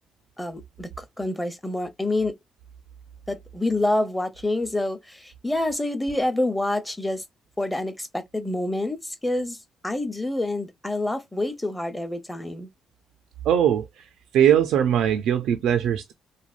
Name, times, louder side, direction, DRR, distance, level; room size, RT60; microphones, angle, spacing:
voice 1, 0.4-2.3 3.3-7.2 7.6-9.6 9.8-12.7, left 1 dB, 10° left, 0.7 m, -27 dB
voice 2, 13.5-13.8 14.3-16.1, right 9 dB, 85° right, 0.4 m, -20 dB
3.3 x 2.0 x 2.4 m
cardioid pair, 90°, 0 cm